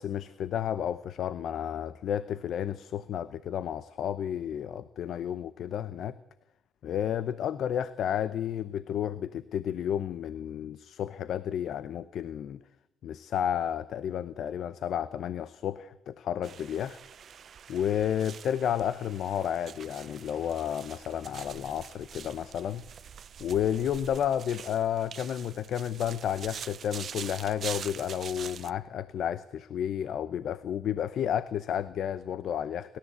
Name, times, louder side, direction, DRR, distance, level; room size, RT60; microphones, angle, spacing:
voice 1, 0.0-6.2 6.8-12.6 13.0-17.0 17.7-22.8 23.4-33.0, left 9 dB, 70° left, 16 dB, 0.7 m, -31 dB
sound 1, 16.4-28.7, right 8 dB, 55° right, 0.7 m, -45 dB
29.0 x 13.0 x 8.2 m, 0.96 s
cardioid pair, 90°, 0 cm